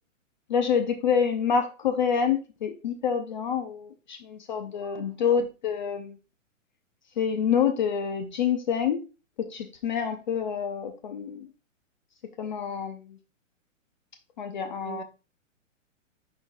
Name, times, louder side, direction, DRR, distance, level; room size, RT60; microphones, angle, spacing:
voice 1, 0.5-6.2 7.2-9.0 9.4-11.5 12.4-13.2 14.4-15.0, left 7 dB, 35° left, 0.6 m, -27 dB
voice 2, 4.7-5.3 14.8-15.0, right 6 dB, 35° right, 0.8 m, -42 dB
10.5 x 4.0 x 2.6 m
hypercardioid pair, 165°, 39 cm